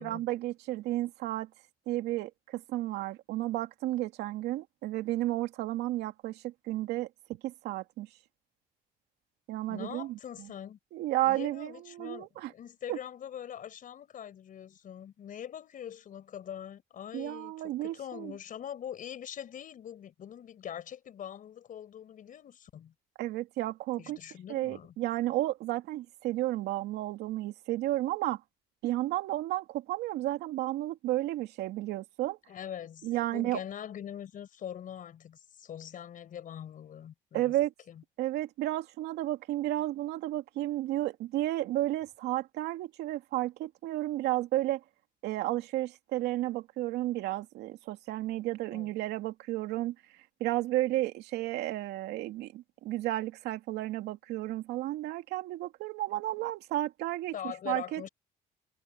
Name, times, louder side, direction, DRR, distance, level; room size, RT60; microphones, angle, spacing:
voice 1, 0.0-1.5 1.9-8.1 9.5-10.2 10.9-12.5 12.9-13.0 17.1-18.3 23.2-24.2 24.5-28.4 28.8-32.4 33.0-33.6 37.3-37.7 38.2-44.8 45.2-57.3 57.7-58.1, right 15 dB, 85° right, 2.5 m, -32 dB
voice 2, 9.7-10.8 11.2-22.9 24.0-24.9 32.5-37.6 37.9-38.0 48.7-48.9 57.3-58.1, left 9 dB, 55° left, 5.7 m, -43 dB
cardioid pair, 110°, 17 cm